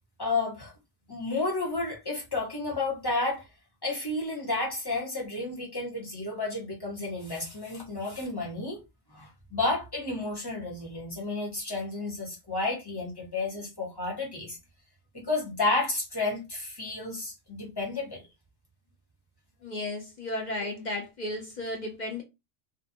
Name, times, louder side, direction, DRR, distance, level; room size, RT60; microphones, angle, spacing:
voice 1, 0.2-0.7 1.1-3.5 3.8-8.8 9.1-14.6 15.1-18.2, left 2 dB, 20° left, 1.0 m, -31 dB
voice 2, 19.6-22.2, left 1 dB, 50° left, 0.5 m, -34 dB
2.5 x 2.3 x 2.6 m
omnidirectional pair, 1.3 m